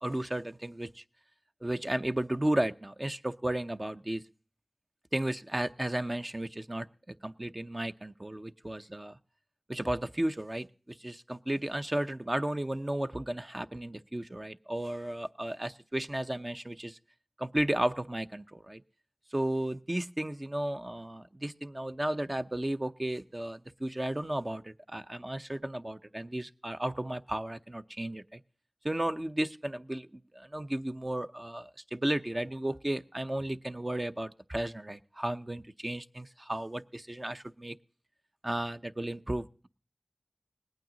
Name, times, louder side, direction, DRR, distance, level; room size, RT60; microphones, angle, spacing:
voice 1, 0.0-1.0 1.6-4.2 5.1-9.1 9.7-17.0 17.4-18.8 19.3-28.4 28.8-37.7 38.4-39.7, right 1 dB, 30° right, 9 dB, 0.7 m, -34 dB
19.5 x 9.1 x 3.9 m, 0.39 s
wide cardioid pair, 45°, 0 cm